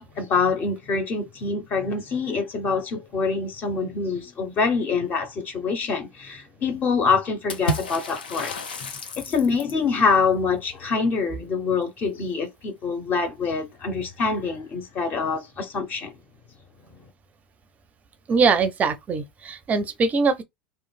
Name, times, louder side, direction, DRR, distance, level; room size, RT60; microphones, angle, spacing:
voice 1, 0.0-8.5 8.8-8.9 9.2-16.1, left 5 dB, 40° left, 0.8 m, -25 dB
Water / Splash splatter, 7.5-9.9, left 1 dB, 80° left, 0.5 m, -31 dB
voice 2, 18.3-20.4, right 4 dB, 30° right, 0.5 m, -22 dB
3.0 x 2.2 x 2.3 m
hypercardioid pair, 85°, 5 cm